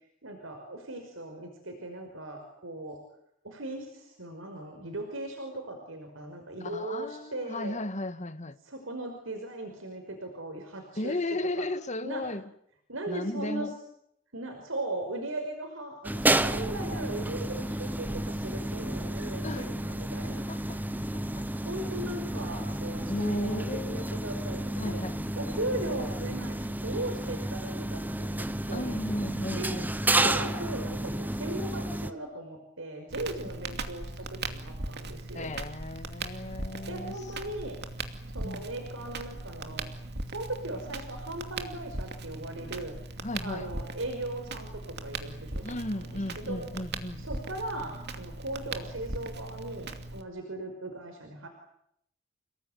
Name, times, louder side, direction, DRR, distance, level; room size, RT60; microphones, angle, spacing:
voice 1, 0.2-3.0 3.4-7.8 8.6-11.2 11.6-11.7 12.0-12.4 12.9-13.7 14.3-20.8 21.5-25.0 25.4-29.0 29.6-29.8 30.1-35.5 36.5-36.6 36.9-37.8 38.3-39.9 40.3-43.0 43.4-46.1 46.4-46.7 47.2-51.5, right 2 dB, 75° right, 5.5 m, -38 dB
voice 2, 6.6-8.6 11.0-12.5 13.1-13.7 19.4-19.7 20.5-21.0 23.0-24.2 24.7-25.3 28.7-30.0 35.3-37.1 38.4-38.7 43.2-43.7 45.6-47.3, left 1 dB, 35° left, 1.8 m, -35 dB
sound 1, 16.0-32.1, right 1 dB, 10° right, 1.1 m, -31 dB
Crackle, 33.1-50.2, right 2 dB, 55° right, 2.6 m, -39 dB
29.0 x 19.0 x 9.5 m
head